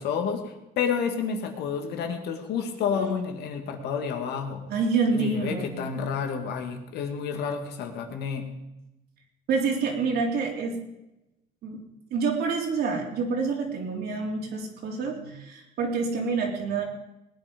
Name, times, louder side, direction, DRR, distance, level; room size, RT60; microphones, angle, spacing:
voice 1, 0.0-4.6 5.1-8.5, left 6 dB, 75° left, 4 dB, 2.4 m, -30 dB
voice 2, 4.7-5.7 9.5-10.8 11.6-11.8 12.1-16.8, right 4 dB, 70° right, 1 dB, 3.5 m, -27 dB
20.0 x 9.5 x 5.4 m, 0.92 s
cardioid pair, 110°, 17 cm